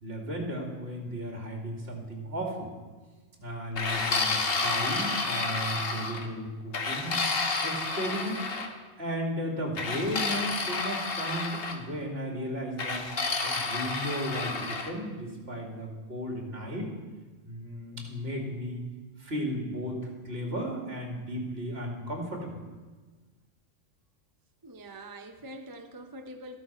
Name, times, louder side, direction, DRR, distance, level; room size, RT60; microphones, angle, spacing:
voice 1, 0.0-2.7 3.4-7.3 7.6-8.4 9.0-13.1 13.4-16.9 17.4-18.8 19.2-22.6, equal, 50° right, 2.6 m, -35 dB
sound 1, 3.8-6.3 6.7-8.7 9.8-11.8 12.8-14.9, left 3 dB, 50° left, 1.2 m, -30 dB
voice 2, 24.6-26.6, right 1 dB, 25° right, 0.5 m, -44 dB
13.5 x 12.5 x 4.5 m
omnidirectional pair, 1.3 m